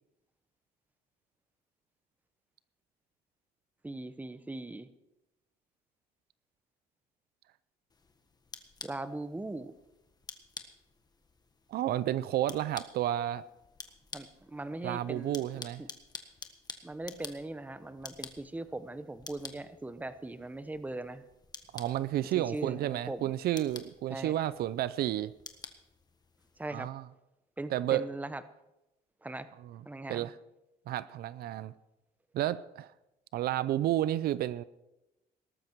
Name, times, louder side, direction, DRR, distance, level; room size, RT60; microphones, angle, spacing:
voice 1, 3.8-4.9 8.8-9.7 14.1-15.9 16.8-21.3 22.2-23.4 24.1-24.3 26.6-26.9 27.6-28.4 29.2-29.5 29.8-30.3, right 2 dB, 10° right, 12 dB, 1.0 m, -40 dB
sound 1, 7.9-26.7, left 4 dB, 25° left, 1.5 m, -50 dB
voice 2, 11.7-13.4 14.8-15.8 21.7-25.3 26.7-27.0 27.7-28.1 30.1-30.3 30.9-31.7 32.3-32.9 33.3-34.6, right 13 dB, 65° right, 17 dB, 0.5 m, -31 dB
18.5 x 13.0 x 4.6 m, 0.94 s
cardioid pair, 110°, 17 cm